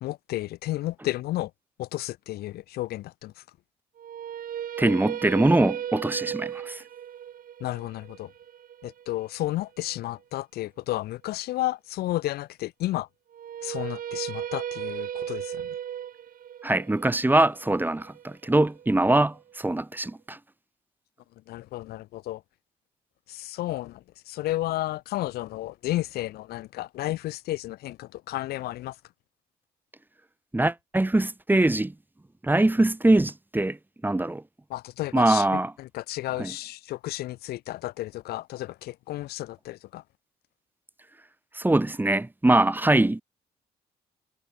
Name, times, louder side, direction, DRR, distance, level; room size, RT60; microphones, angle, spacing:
voice 1, 0.0-1.5 1.8-3.4 7.6-8.3 8.8-13.1 13.6-15.7 21.5-22.4 23.3-29.0 34.7-40.0, left 16 dB, 80° left, 0.7 m, -32 dB
sound 1, 4.0-10.1 13.3-19.4, right 10 dB, 60° right, 1.5 m, -36 dB
voice 2, 4.8-6.8 16.6-20.4 30.5-31.9 32.4-33.8 34.0-34.4 35.1-35.7 36.4-36.5 41.5-43.2, right 2 dB, 10° right, 1.2 m, -22 dB
supercardioid pair, 70°, 16 cm